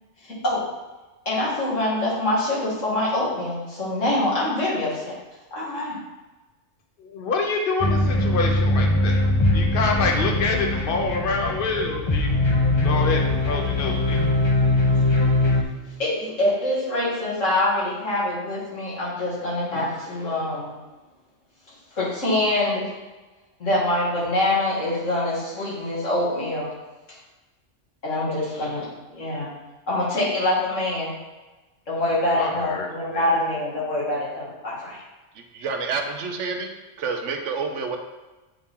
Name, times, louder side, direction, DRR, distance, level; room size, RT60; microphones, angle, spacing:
voice 1, 1.3-5.1 5.5-6.0 16.0-20.7 22.0-22.9 23.6-26.7 28.0-29.5 29.9-31.1 31.9-35.0, left 1 dB, 85° left, -8 dB, 2.6 m, -25 dB
voice 2, 7.0-9.2 9.5-12.3 12.8-14.2 32.4-33.3, left 3 dB, 50° left, 2 dB, 1.0 m, -26 dB
sound 1, 7.8-15.6, left 2 dB, 30° left, 0.6 m, -21 dB
voice 3, 35.5-36.7 37.0-38.0, right 4 dB, 75° right, 5 dB, 1.0 m, -28 dB
7.6 x 4.3 x 3.6 m, 1.2 s
omnidirectional pair, 1.3 m